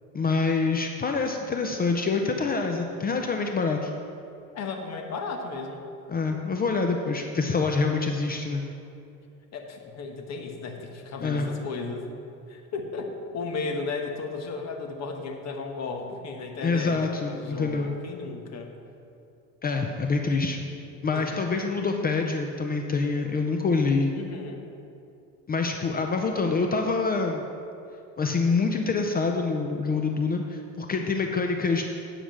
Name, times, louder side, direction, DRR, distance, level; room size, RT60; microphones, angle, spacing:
voice 1, 0.1-3.9 6.1-8.6 11.2-11.5 16.6-17.9 19.6-20.6 21.0-24.1 25.5-27.4 28.2-31.8, left 4 dB, 25° left, 3 dB, 0.6 m, -26 dB
voice 2, 4.5-5.8 9.5-12.1 12.5-18.7 21.1-21.3 24.1-24.6, left 4 dB, 45° left, 3 dB, 1.4 m, -34 dB
9.2 x 4.9 x 7.5 m, 2.6 s
cardioid pair, 120°, 36 cm